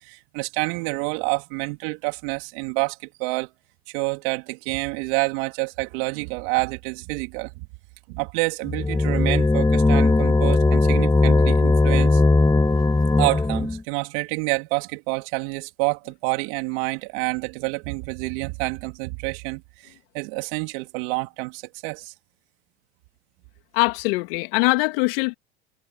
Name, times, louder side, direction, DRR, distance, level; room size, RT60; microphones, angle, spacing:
voice 1, 0.0-3.5 3.9-7.7 8.1-12.2 13.2-22.1, right 28 dB, 70° right, 3.6 m, -28 dB
sound 1, 8.7-13.8, left 3 dB, 10° left, 2.1 m, -18 dB
voice 2, 23.7-25.4, left 28 dB, 75° left, 3.1 m, -22 dB
hypercardioid pair, 80°, 30 cm